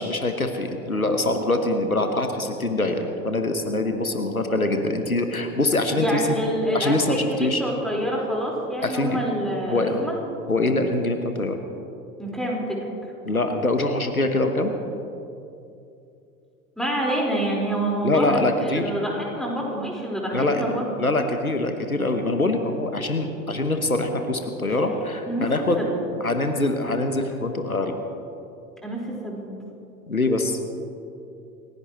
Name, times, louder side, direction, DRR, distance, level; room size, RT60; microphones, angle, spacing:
voice 1, 0.0-6.2 6.7-7.6 8.8-9.2 9.7-10.0 10.5-11.6 13.2-14.7 18.0-18.9 20.3-20.7 21.0-25.8 26.2-27.9 30.1-30.6, left 2 dB, 90° left, 6 dB, 1.2 m, -24 dB
voice 2, 6.0-10.1 12.2-12.9 16.8-20.8 25.2-25.5 25.8-25.9 28.8-29.5, right 1 dB, ahead, -3 dB, 4.5 m, -27 dB
28.0 x 16.5 x 3.1 m, 2.7 s
figure-of-eight pair, 80°, 42 cm